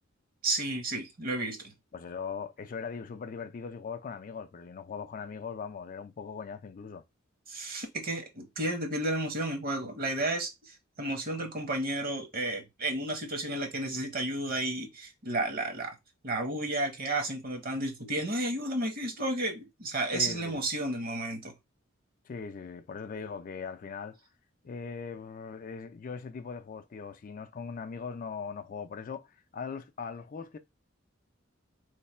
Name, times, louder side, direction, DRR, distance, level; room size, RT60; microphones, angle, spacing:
voice 1, 0.4-1.7 7.5-16.0 16.2-21.5, right 1 dB, 45° right, 1.0 m, -32 dB
voice 2, 1.9-7.0 20.1-20.6 22.3-24.2 24.6-30.6, left 5 dB, 40° left, 0.4 m, -40 dB
3.2 x 2.1 x 4.2 m
head